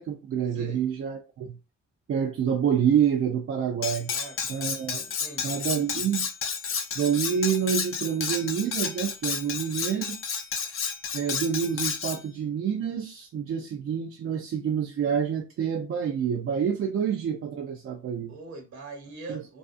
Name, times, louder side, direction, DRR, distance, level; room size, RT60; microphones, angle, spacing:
voice 1, 0.0-1.6 2.1-4.1 4.5-5.1 5.4-6.3 7.0-10.2 11.1-18.3 19.3-19.4, right 8 dB, 45° right, 0.4 m, -27 dB
voice 2, 0.5-0.8 4.1-4.6 5.2-5.6 18.3-19.6, right 3 dB, 65° right, 1.1 m, -42 dB
Cutlery silverware, 3.8-12.2, left 6 dB, 45° left, 0.5 m, -31 dB
2.4 x 2.3 x 2.5 m
cardioid pair, 90°, 30 cm